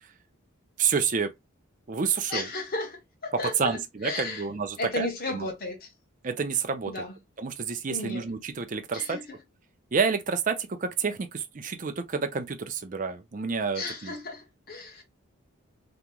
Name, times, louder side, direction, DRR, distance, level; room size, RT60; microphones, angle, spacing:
voice 1, 0.8-1.3 1.9-2.5 3.6-5.5 6.2-6.9 7.4-9.2 9.9-14.1, right 5 dB, 35° right, 0.4 m, -29 dB
voice 2, 2.3-4.5 4.8-5.9 6.9-7.1 7.9-8.3 8.9-9.4 13.7-15.0, left 2 dB, 45° left, 1.1 m, -34 dB
2.9 x 2.1 x 3.6 m
head